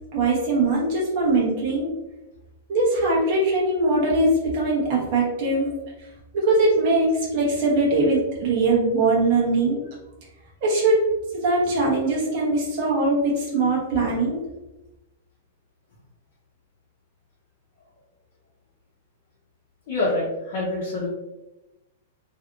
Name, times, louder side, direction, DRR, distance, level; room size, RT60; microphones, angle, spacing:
voice 1, 0.1-1.9 2.7-5.7 6.3-9.8 10.6-11.0 11.3-14.4, right 2 dB, 35° right, -5 dB, 0.9 m, -21 dB
voice 2, 19.9-21.1, left 2 dB, 40° left, -8 dB, 1.0 m, -26 dB
3.2 x 2.7 x 2.5 m, 1.0 s
supercardioid pair, 175°, 0 cm